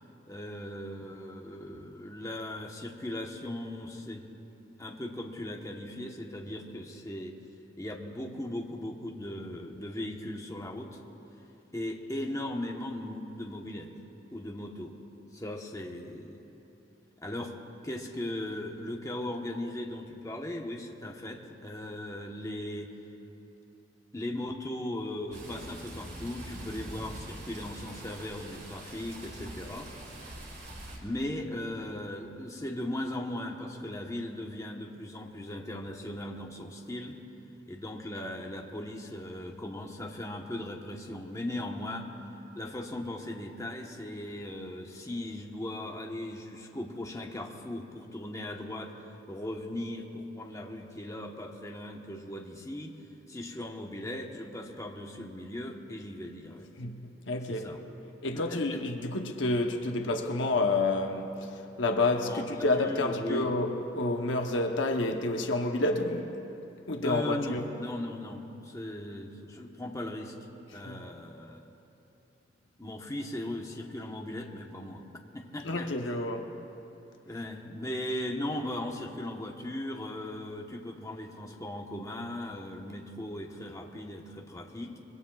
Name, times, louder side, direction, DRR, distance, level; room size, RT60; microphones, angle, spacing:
voice 1, 0.2-4.3 4.8-7.4 7.8-11.0 11.7-13.9 14.3-14.9 15.3-16.4 17.2-17.6 17.8-22.9 24.1-29.9 31.0-37.2 37.7-42.1 42.5-48.9 49.3-52.9 53.3-56.7 57.5-57.8 58.3-58.8 62.3-63.5 67.0-70.3 70.7-71.7 72.8-75.0 75.3-75.9 77.3-85.0, left 1 dB, 15° left, 1.1 m, -38 dB
sound 1, 25.3-31.0, right 1 dB, 60° right, 3.3 m, -44 dB
voice 2, 57.3-57.7 58.2-66.4 66.9-67.6 70.8-71.0 75.6-76.5, left 2 dB, 75° left, 0.9 m, -29 dB
25.0 x 22.5 x 2.4 m
head